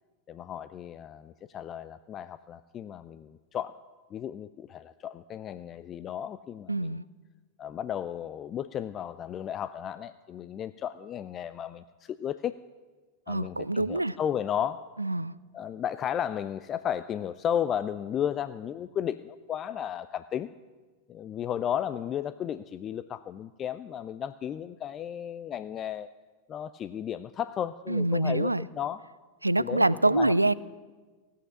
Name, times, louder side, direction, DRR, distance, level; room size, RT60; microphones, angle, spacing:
voice 1, 0.3-3.8 4.1-7.0 7.6-12.5 13.3-14.9 15.5-20.5 21.1-26.1 26.5-29.0 29.6-30.3, left 9 dB, 30° left, 13 dB, 0.4 m, -34 dB
voice 2, 6.7-7.0 13.3-14.2 15.0-15.3 27.9-28.6 29.4-30.5, right 2 dB, 85° right, 19 dB, 0.4 m, -25 dB
16.5 x 8.5 x 9.8 m, 1.4 s
figure-of-eight pair, 90°, 0 cm